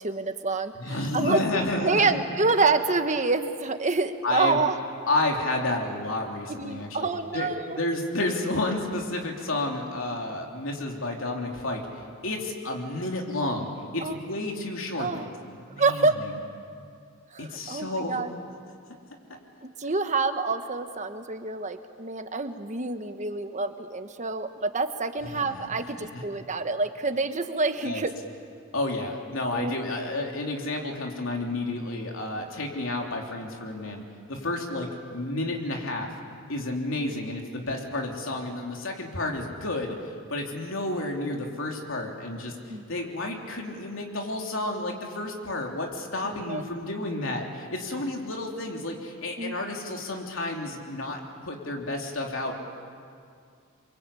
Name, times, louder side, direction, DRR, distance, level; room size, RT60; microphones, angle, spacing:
voice 1, 0.0-1.4 1.8-4.8 6.6-7.8 14.0-14.2 15.0-15.3 15.8-16.1 17.3-18.3 19.6-28.1 29.5-29.8 42.7-42.8 46.2-46.6 49.4-49.6, right 3 dB, 35° right, 8 dB, 1.3 m, -27 dB
voice 2, 0.7-2.2 4.2-4.6 5.1-7.1 7.3-7.5 7.7-16.4 17.4-18.2 25.2-26.2 27.8-28.0 28.7-34.0 34.3-36.1 36.5-39.9 40.3-52.7, left 2 dB, 75° left, 1 dB, 3.2 m, -31 dB
28.0 x 23.5 x 8.5 m, 2.3 s
head